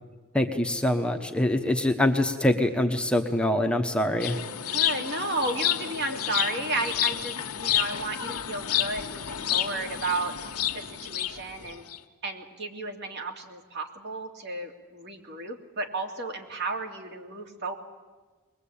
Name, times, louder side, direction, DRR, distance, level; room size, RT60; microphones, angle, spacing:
voice 1, 0.3-4.4, left 1 dB, 5° left, 5 dB, 1.0 m, -24 dB
sound 1, 4.2-12.0, left 11 dB, 80° left, 1.3 m, -30 dB
voice 2, 4.7-11.8 12.2-17.7, right 2 dB, 50° right, 3 dB, 2.6 m, -33 dB
21.5 x 21.0 x 8.6 m, 1.3 s
head